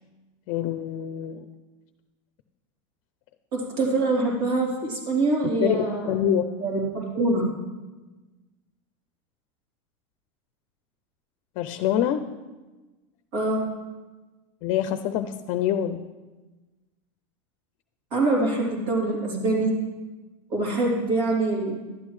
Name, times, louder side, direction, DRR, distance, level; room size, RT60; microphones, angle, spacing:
voice 1, 0.5-1.4 5.6-6.4 11.6-12.2 14.6-16.0, left 10 dB, 50° left, 9 dB, 0.5 m, -25 dB
voice 2, 3.5-6.1 6.6-7.5 13.3-13.6 18.1-19.7 20.5-21.8, right 2 dB, 75° right, -3 dB, 3.3 m, -24 dB
12.0 x 9.3 x 3.2 m, 1.2 s
supercardioid pair, 150°, 17 cm